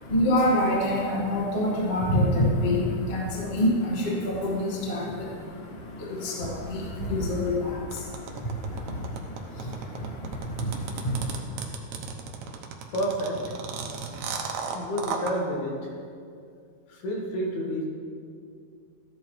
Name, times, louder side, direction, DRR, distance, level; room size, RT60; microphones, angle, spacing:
voice 1, 0.0-11.4, left 1 dB, 55° left, -3 dB, 0.7 m, -27 dB
sound 1, 7.9-15.3, right 6 dB, 75° right, 1.7 m, -34 dB
voice 2, 12.9-13.4 14.7-15.8 16.9-17.9, equal, 85° left, -1 dB, 3.6 m, -29 dB
14.5 x 11.0 x 3.3 m, 2.3 s
omnidirectional pair, 4.4 m